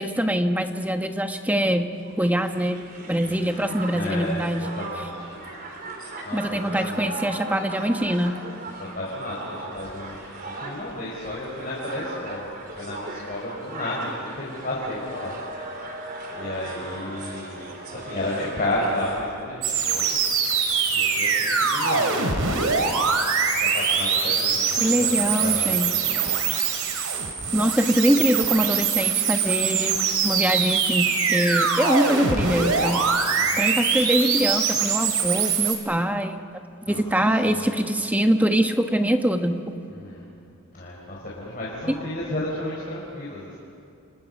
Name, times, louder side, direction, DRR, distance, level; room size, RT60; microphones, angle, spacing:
voice 1, 0.0-1.9 2.2-2.8 3.1-4.6 6.3-8.4 24.8-25.9 27.5-33.0 33.6-36.4 36.9-39.7 41.9-42.0, equal, 5° right, 5 dB, 1.3 m, -23 dB
Crowd, 2.0-19.4, right 2 dB, 40° right, 3.8 m, -38 dB
voice 2, 3.2-5.4 6.2-7.2 8.7-12.5 12.8-15.3 16.3-20.2 20.9-23.0 23.5-26.4 26.7-26.8 33.3-33.7 36.8-37.0 37.4-37.7 39.9-40.3 40.7-43.6, left 1 dB, 40° left, -5 dB, 4.8 m, -33 dB
sound 1, 19.6-35.8, right 5 dB, 80° right, 3.4 m, -23 dB
29.0 x 29.0 x 5.4 m, 2.5 s
head